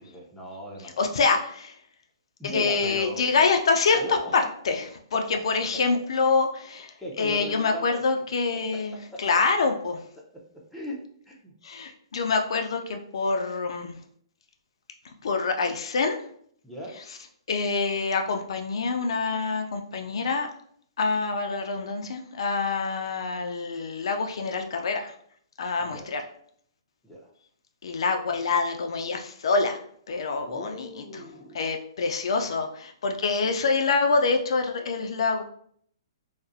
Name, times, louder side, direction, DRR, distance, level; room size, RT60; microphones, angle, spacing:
voice 1, 0.0-1.2 2.4-3.3 3.9-4.4 5.1-5.2 5.5-5.6 7.0-8.0 8.7-9.2 10.3-10.4 10.7-11.5 16.6-17.0 25.8-26.1 27.0-27.3 30.5-31.6, equal, 5° left, -4 dB, 0.5 m, -38 dB
voice 2, 1.0-1.7 2.5-4.0 4.3-10.0 11.6-14.0 15.2-16.2 17.5-20.5 21.0-25.1 25.6-26.2 27.8-29.8 30.1-31.2 31.5-35.4, left 4 dB, 70° left, 4 dB, 0.3 m, -26 dB
2.4 x 2.0 x 2.5 m, 0.63 s
hypercardioid pair, 140°, 3 cm